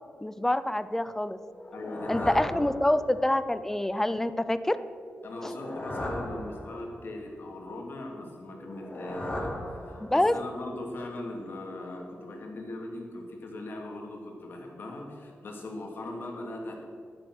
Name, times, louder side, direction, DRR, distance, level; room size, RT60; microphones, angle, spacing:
voice 1, 0.2-1.4 2.1-4.8 5.4-5.5 10.0-10.4, left 1 dB, 10° left, 13 dB, 0.5 m, -26 dB
sound 1, 1.5-3.3 5.3-7.1 8.6-10.4, left 1 dB, 25° left, 2.5 m, -37 dB
voice 2, 1.7-2.4 5.2-9.5 9.9-16.8, left 1 dB, 55° left, 0 dB, 2.6 m, -39 dB
11.5 x 10.5 x 6.3 m, 2.4 s
wide cardioid pair, 150°, 4 cm